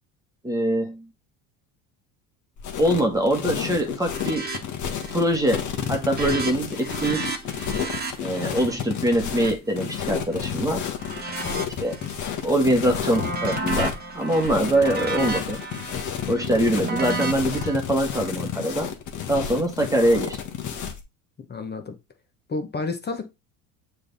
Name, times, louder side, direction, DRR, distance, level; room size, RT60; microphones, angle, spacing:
voice 1, 0.4-1.1 2.8-4.5 5.1-7.3 8.2-10.9 11.8-12.0 12.4-15.6 16.2-18.9 19.3-20.4, right 1 dB, 10° right, 1.4 m, -23 dB
sound 1, 2.6-21.0, left 8 dB, 50° left, 1.5 m, -31 dB
sound 2, 4.1-4.6 4.9-5.3 5.6-10.5 11.0-12.3 12.7-17.7, right 3 dB, 25° right, 1.4 m, -33 dB
voice 2, 21.4-22.0 22.5-23.3, left 3 dB, 25° left, 1.0 m, -30 dB
6.6 x 3.5 x 4.0 m
supercardioid pair, 95°, 39 cm